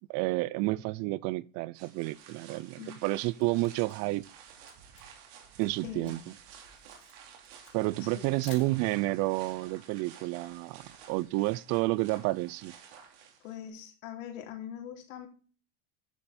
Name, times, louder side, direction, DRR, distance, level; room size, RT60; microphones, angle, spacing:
voice 1, 0.1-4.2 5.6-6.2 7.7-12.7, right 20 dB, 45° right, 0.4 m, -30 dB
sound 1, 1.7-13.7, right 7 dB, 65° right, 3.3 m, -52 dB
Camera, 3.4-9.2, left 9 dB, 55° left, 4.6 m, -55 dB
voice 2, 5.8-6.2 8.1-8.6 13.4-15.3, left 9 dB, 85° left, 3.4 m, -43 dB
10.5 x 7.7 x 4.2 m
supercardioid pair, 140°, 38 cm